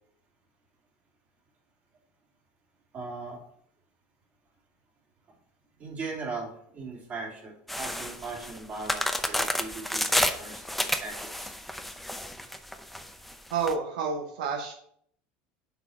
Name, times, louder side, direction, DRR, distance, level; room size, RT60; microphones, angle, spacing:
voice 1, 2.9-3.4 5.8-11.6, right 3 dB, 40° right, -1 dB, 2.6 m, -39 dB
sound 1, 7.7-13.7, left 1 dB, ahead, 0.6 m, -30 dB
voice 2, 13.5-14.7, right 5 dB, 85° right, 2 dB, 0.9 m, -29 dB
6.8 x 4.3 x 4.4 m, 0.64 s
supercardioid pair, 100°, 4 cm